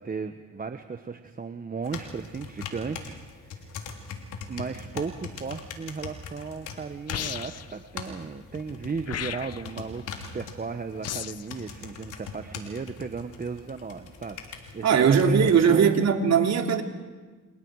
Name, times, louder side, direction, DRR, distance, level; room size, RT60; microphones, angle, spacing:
voice 1, 0.0-3.8 4.5-10.0 10.3-15.9, right 5 dB, 30° right, 7 dB, 1.2 m, -35 dB
sound 1, 1.8-15.6, left 5 dB, 85° left, 3.2 m, -42 dB
sound 2, 7.1-7.8 9.1-9.8 11.0-11.5, left 10 dB, 55° left, 0.9 m, -34 dB
voice 2, 14.8-16.8, right 6 dB, 60° right, 3 dB, 2.9 m, -20 dB
29.5 x 28.5 x 4.8 m, 1.3 s
cardioid pair, 90°, 30 cm